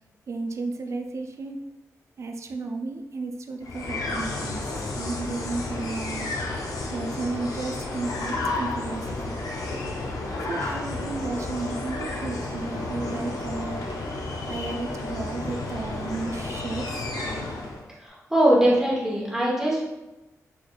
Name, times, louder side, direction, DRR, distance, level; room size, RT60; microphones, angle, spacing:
voice 1, 0.3-1.6 2.2-4.6 5.0-6.3 6.9-9.4 10.5-13.8 14.5-17.1, right 3 dB, 55° right, 5 dB, 0.4 m, -33 dB
sound 1, 3.6-17.9, left 2 dB, 80° left, 0.6 m, -32 dB
voice 2, 18.0-19.8, right 1 dB, 10° right, -5 dB, 0.9 m, -21 dB
4.0 x 3.3 x 2.3 m, 1.0 s
cardioid pair, 80°, 6 cm